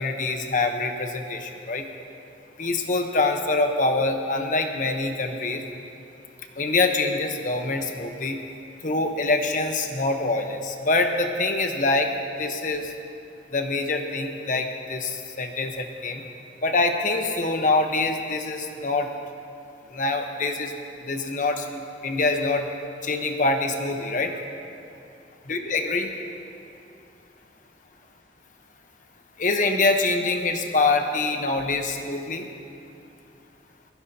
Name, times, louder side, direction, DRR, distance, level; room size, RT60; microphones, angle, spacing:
voice 1, 0.0-1.9 2.6-5.6 6.6-8.4 8.8-12.1 12.4-12.9 13.5-16.2 16.6-19.1 19.9-22.7 23.0-24.4 25.5-26.1 29.4-32.5, left 3 dB, 45° left, 4 dB, 1.1 m, -25 dB
21.0 x 15.0 x 2.9 m, 2.6 s
head